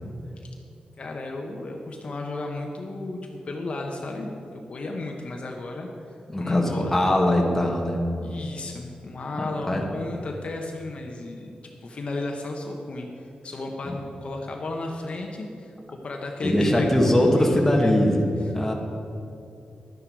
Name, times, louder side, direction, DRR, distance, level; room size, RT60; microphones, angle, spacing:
voice 1, 1.0-3.2 3.4-4.3 4.7-7.0 8.2-18.0, left 2 dB, 50° left, 1 dB, 1.0 m, -33 dB
voice 2, 6.3-8.0 9.4-9.9 13.9-14.0 16.4-18.7, left 1 dB, 10° left, 0 dB, 1.5 m, -22 dB
12.0 x 9.9 x 4.7 m, 2.6 s
wide cardioid pair, 135°, 3 cm